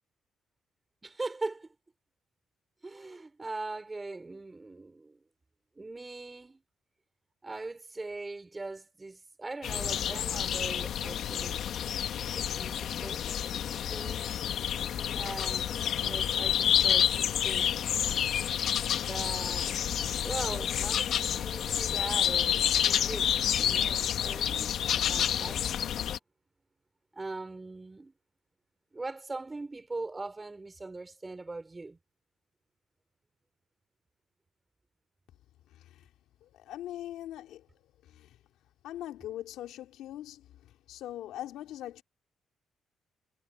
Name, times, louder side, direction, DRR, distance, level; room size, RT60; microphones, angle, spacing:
voice 1, 1.0-1.7 2.8-5.2 5.8-6.6 7.4-11.6 12.3-14.3 15.1-17.8 19.0-19.8 20.2-24.8 25.0-25.9 27.1-28.1 28.9-32.0, right 3 dB, 20° right, 4.2 m, -41 dB
sound 1, 9.6-26.2, left 9 dB, 70° left, 1.3 m, -29 dB
voice 2, 35.7-36.1 36.4-37.7 38.0-38.4 38.8-42.0, left 13 dB, 85° left, 3.7 m, -42 dB
cardioid pair, 90°, 0 cm